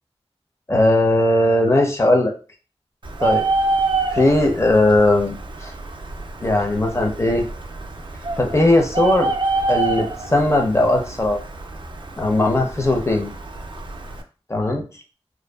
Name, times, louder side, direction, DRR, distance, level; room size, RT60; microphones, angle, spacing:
voice 1, 0.7-2.3 3.2-3.4 4.1-5.4 5.6-5.7 6.4-7.4 8.4-9.3 9.7-11.4 12.2-13.3 14.5-14.8, left 1 dB, 25° left, 2 dB, 0.6 m, -18 dB
Bird, 3.0-14.2, right 3 dB, 50° right, 0.4 m, -27 dB
2.5 x 2.2 x 2.2 m, 0.36 s
cardioid pair, 45°, 10 cm